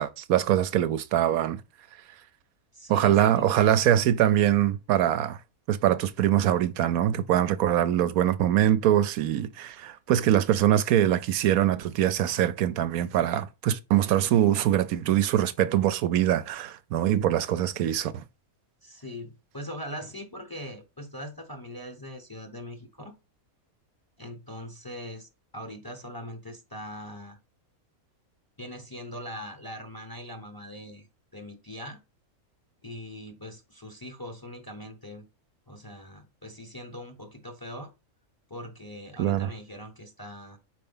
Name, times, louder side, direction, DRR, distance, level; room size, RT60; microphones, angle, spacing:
voice 1, 0.0-1.6 2.9-5.4 5.7-18.2 39.2-39.5, right 11 dB, 80° right, 1.1 m, -23 dB
voice 2, 2.7-4.0 18.8-23.1 24.2-27.4 28.6-31.1 31.3-32.0 32.8-35.2 35.7-37.9 38.5-40.6, equal, 20° left, 0.9 m, -41 dB
4.9 x 4.4 x 5.5 m
omnidirectional pair, 1.5 m